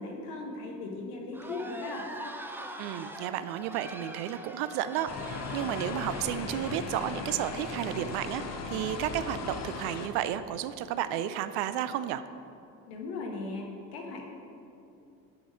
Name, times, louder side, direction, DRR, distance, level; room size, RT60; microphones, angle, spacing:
voice 1, 0.0-2.1 12.9-14.2, left 3 dB, 70° left, 1 dB, 1.5 m, -38 dB
sound 1, 1.3-8.9, right 1 dB, 5° right, 0.5 m, -44 dB
voice 2, 2.8-12.2, right 11 dB, 55° right, 13 dB, 0.5 m, -32 dB
sound 2, 5.1-10.1, left 4 dB, 35° left, 0.9 m, -37 dB
6.3 x 5.9 x 6.2 m, 2.8 s
hypercardioid pair, 65°, 49 cm